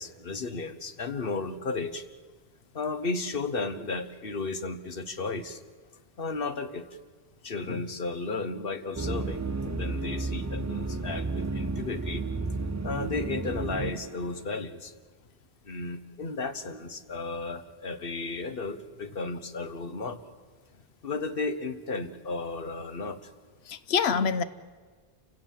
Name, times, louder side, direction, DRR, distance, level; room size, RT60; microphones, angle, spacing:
voice 1, 0.0-2.1 2.7-5.6 6.2-6.9 7.4-9.4 9.7-12.2 12.8-14.9 15.6-20.2 21.0-23.3, left 3 dB, 65° left, 10 dB, 1.4 m, -34 dB
sound 1, 9.0-14.4, right 3 dB, 20° right, 0.5 m, -32 dB
voice 2, 23.7-24.4, left 6 dB, 85° left, 14 dB, 1.1 m, -27 dB
28.5 x 17.0 x 7.5 m, 1.5 s
omnidirectional pair, 1.1 m